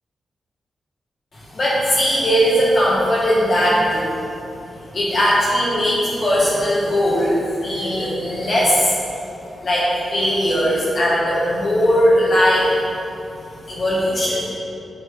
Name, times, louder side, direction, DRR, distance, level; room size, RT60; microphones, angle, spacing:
voice 1, 1.3-4.1 4.9-9.0 9.6-12.8 13.7-14.4, equal, 55° left, -8 dB, 1.3 m, -19 dB
7.1 x 3.1 x 5.1 m, 2.8 s
cardioid pair, 55°, 0 cm